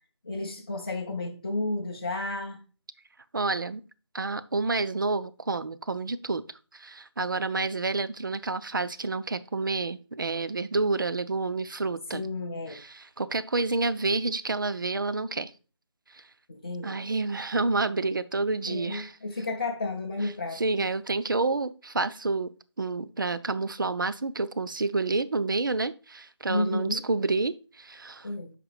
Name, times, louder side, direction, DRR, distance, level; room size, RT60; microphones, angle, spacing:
voice 1, 0.2-2.6 12.1-12.8 16.5-17.1 18.7-20.9 26.5-27.0 28.2-28.5, left 2 dB, 20° left, 0.6 m, -32 dB
voice 2, 3.3-3.8 4.1-6.4 6.7-12.2 12.7-15.5 16.1-16.2 16.8-19.1 20.5-28.3, right 3 dB, 45° right, 0.5 m, -29 dB
6.2 x 5.0 x 4.8 m
figure-of-eight pair, 160°, 15 cm